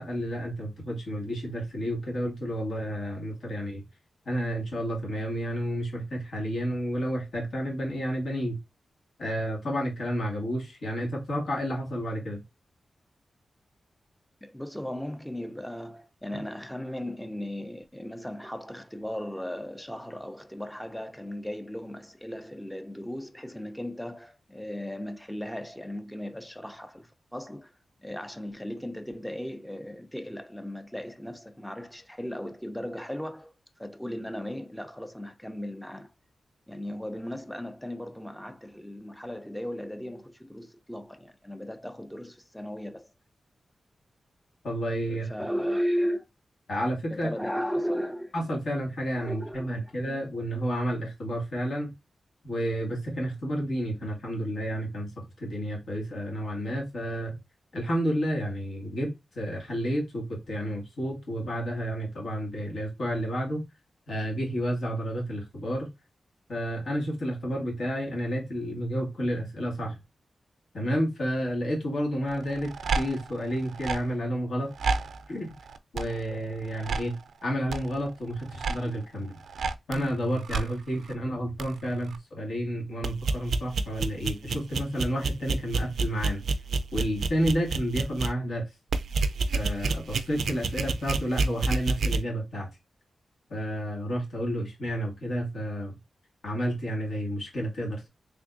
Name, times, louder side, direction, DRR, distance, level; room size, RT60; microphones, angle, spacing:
voice 1, 0.0-3.8 4.3-8.6 9.2-12.4 44.6-45.3 46.7-47.3 48.3-51.9 52.4-57.3 57.7-59.1 59.4-63.6 64.1-65.9 66.5-70.0 70.7-74.7 75.3-75.6 75.9-77.2 77.4-79.4 79.9-86.4 86.9-88.6 89.5-92.7 93.5-96.0 96.4-98.1, equal, 70° left, 1.7 m, -31 dB
voice 2, 14.4-27.7 28.0-33.5 33.8-36.1 36.7-43.1 45.0-46.2 47.1-48.3 49.2-50.0, equal, 5° left, 0.5 m, -36 dB
sound 1, 72.3-74.0 74.7-75.2 75.6-76.3 76.7-77.1 77.7-77.9 78.4-78.9 79.5-80.1 80.4-80.7 81.1-81.2 81.6-81.7 82.1-82.2 83.0-88.3 88.9-92.2, right 3 dB, 80° right, 0.3 m, -29 dB
3.5 x 3.3 x 2.5 m
cardioid pair, 80°, 0 cm